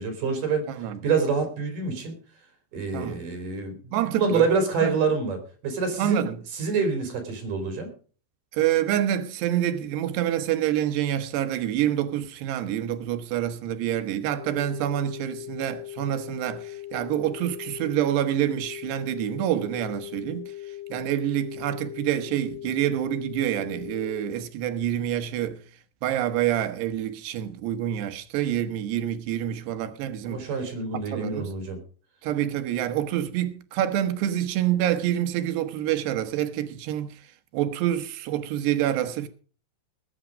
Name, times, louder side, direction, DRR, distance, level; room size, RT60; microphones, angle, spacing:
voice 1, 0.0-0.7 1.0-2.1 2.7-6.3 6.5-7.9 30.3-31.8, right 4 dB, 55° right, 5.1 m, -27 dB
voice 2, 0.7-1.0 2.9-3.2 3.9-4.5 4.8-4.9 6.0-6.4 8.5-20.5 20.9-25.6 26.0-30.5 30.9-31.5 32.2-37.2 37.5-39.3, right 11 dB, 85° right, 3.3 m, -27 dB
sound 1, 14.3-24.3, left 14 dB, 35° left, 6.5 m, -39 dB
20.0 x 9.3 x 5.1 m
omnidirectional pair, 4.7 m